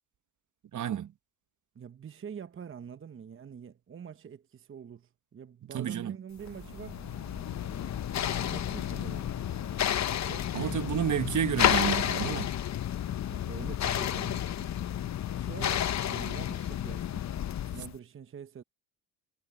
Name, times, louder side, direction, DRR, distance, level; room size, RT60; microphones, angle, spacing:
voice 1, 0.7-1.1 5.7-6.2 10.5-12.5, right 9 dB, 45° right, 1.2 m, -30 dB
voice 2, 1.7-7.0 8.1-9.3 10.2-11.0 13.3-14.9 15.3-17.3 17.7-18.6, right 7 dB, 30° right, 0.8 m, -45 dB
sound 1, 6.4-10.4, right 15 dB, 75° right, 1.1 m, -52 dB
sound 2, 6.5-18.0, left 11 dB, 45° left, 0.7 m, -31 dB
cardioid pair, 95°, 40 cm